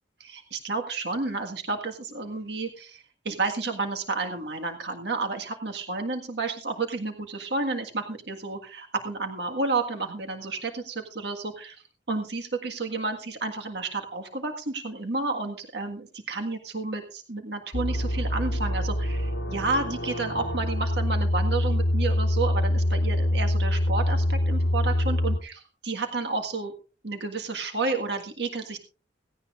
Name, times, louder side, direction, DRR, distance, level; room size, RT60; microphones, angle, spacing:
voice 1, 0.2-11.8 12.1-26.7 27.0-28.8, right 3 dB, 60° right, 4 dB, 1.7 m, -31 dB
sound 1, 17.7-25.4, left 1 dB, 55° left, 1.1 m, -25 dB
17.0 x 16.5 x 2.5 m, 0.34 s
head